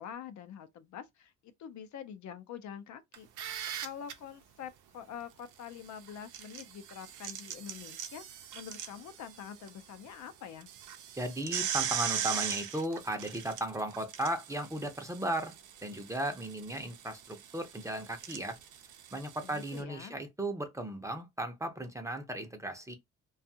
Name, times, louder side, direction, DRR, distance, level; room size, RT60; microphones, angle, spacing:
voice 1, 0.0-3.3 3.8-10.7 19.4-20.2, left 8 dB, 70° left, 0.6 m, -46 dB
sound 1, 3.1-4.1 6.1-9.7 10.1-10.2 10.6-19.8, right 9 dB, 85° right, 0.6 m, -39 dB
voice 2, 11.1-15.6 15.8-18.6 19.1-23.0, right 1 dB, 10° right, 0.6 m, -36 dB
2.5 x 2.3 x 2.7 m
cardioid pair, 90°, 30 cm